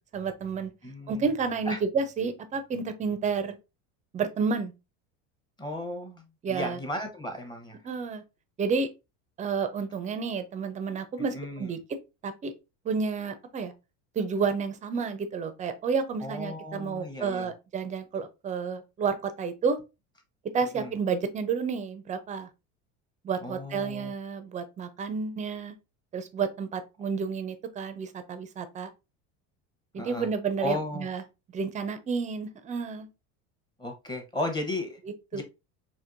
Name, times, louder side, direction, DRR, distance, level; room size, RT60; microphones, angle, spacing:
voice 1, 0.0-0.7 1.1-3.6 4.1-4.7 6.4-6.8 7.8-8.2 8.6-8.9 9.4-11.8 12.2-12.5 12.8-13.7 14.2-19.8 20.5-22.5 23.2-25.8 26.1-28.9 29.9-31.2 31.5-33.1 35.3-35.4, right 5 dB, 20° right, 0.4 m, -30 dB
voice 2, 0.8-1.2 1.7-1.8 5.6-6.2 6.5-7.8 11.2-11.7 16.2-17.5 20.7-20.9 23.4-24.1 30.0-30.3 30.6-31.1 33.8-35.0 35.3-35.4, left 1 dB, 10° left, 0.8 m, -35 dB
4.4 x 3.0 x 2.5 m
cardioid pair, 135°, 35 cm